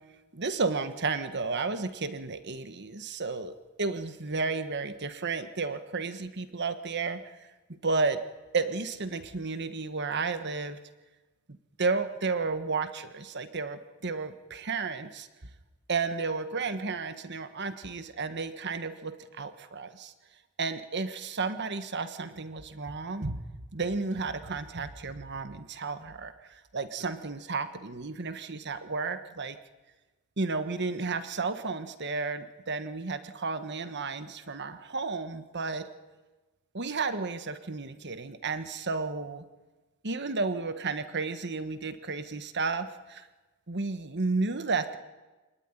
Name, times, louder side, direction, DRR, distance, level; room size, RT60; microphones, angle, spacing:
voice 1, 0.3-7.2 7.7-8.2 8.5-10.8 11.8-15.3 15.9-20.1 20.6-23.4 23.7-29.6 30.4-35.9 36.7-39.4 40.0-43.3 43.7-45.0, right 4 dB, 55° right, 10 dB, 1.4 m, -32 dB
26.0 x 19.5 x 9.9 m, 1.2 s
head